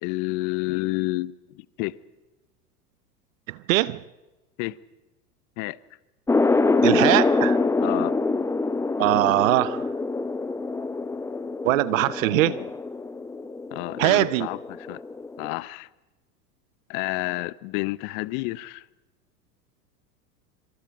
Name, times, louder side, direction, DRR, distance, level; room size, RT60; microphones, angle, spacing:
voice 1, 0.0-2.0 4.6-4.8 5.6-5.8 7.8-8.2 12.3-12.7 13.7-15.0 15.4-15.9 16.9-18.8, left 21 dB, 40° left, 0.8 m, -30 dB
voice 2, 3.5-4.0 6.8-7.6 9.0-9.9 11.6-12.5 14.0-14.5, right 17 dB, 55° right, 0.8 m, -21 dB
sound 1, 6.3-15.5, left 3 dB, 5° left, 0.7 m, -25 dB
27.0 x 25.5 x 5.2 m
figure-of-eight pair, 90°, 48 cm